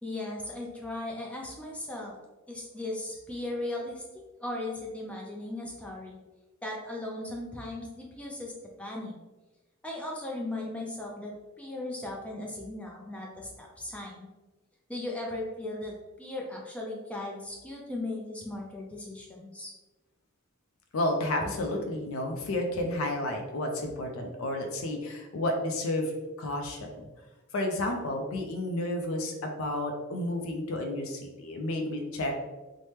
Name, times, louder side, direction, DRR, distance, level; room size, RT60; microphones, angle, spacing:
voice 1, 0.0-2.1 2.5-4.0 4.4-6.2 6.6-8.5 8.8-9.1 9.8-11.3 11.6-14.3 14.9-19.7, left 2 dB, 5° left, -2 dB, 0.4 m, -37 dB
voice 2, 20.9-26.1 26.4-27.0 27.5-32.4, left 1 dB, 70° left, 2 dB, 0.4 m, -31 dB
3.3 x 2.1 x 2.8 m, 1.1 s
head